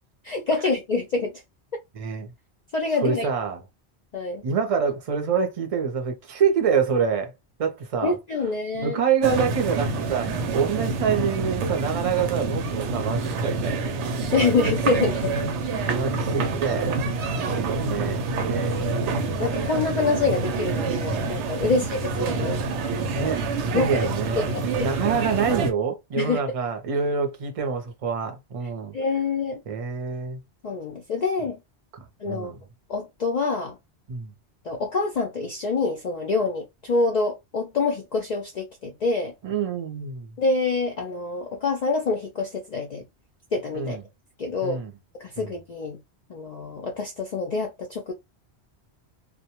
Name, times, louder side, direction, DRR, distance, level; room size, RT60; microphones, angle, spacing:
voice 1, 0.2-1.4 2.7-3.3 4.1-4.4 8.0-9.0 14.3-15.5 19.4-22.6 23.7-24.1 24.4-24.9 26.2-26.4 28.9-29.6 30.6-31.6 32.2-32.5 32.9-33.8 34.6-39.3 40.4-43.0 43.5-44.0 44.4-44.8 45.2-46.0 46.3-48.1, left 3 dB, 55° left, 0.4 m, -26 dB
voice 2, 1.9-2.3 3.0-3.6 4.4-7.3 7.6-8.2 8.7-13.8 15.8-17.1 17.5-19.1 21.6-21.8 23.1-28.9 29.7-30.4 31.9-32.6 34.1-34.3 39.4-40.4 43.7-44.0 44.6-44.9 45.4-45.5, right 6 dB, 45° right, 0.5 m, -26 dB
sound 1, 9.2-25.7, right 3 dB, 90° right, 0.9 m, -27 dB
2.1 x 2.1 x 2.8 m
omnidirectional pair, 1.1 m